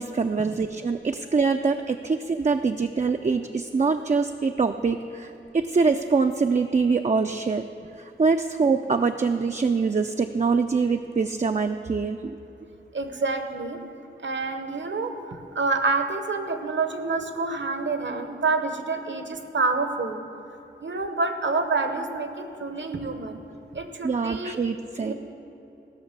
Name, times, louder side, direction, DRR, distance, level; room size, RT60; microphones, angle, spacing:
voice 1, 0.0-7.7 8.0-12.4 24.0-25.1, right 4 dB, 35° right, 6 dB, 0.4 m, -24 dB
voice 2, 12.9-13.8 14.2-20.2 20.8-23.4 23.7-24.6 25.0-25.1, right 3 dB, 65° right, 7 dB, 1.0 m, -28 dB
15.5 x 6.3 x 6.7 m, 3.0 s
wide cardioid pair, 70°, 21 cm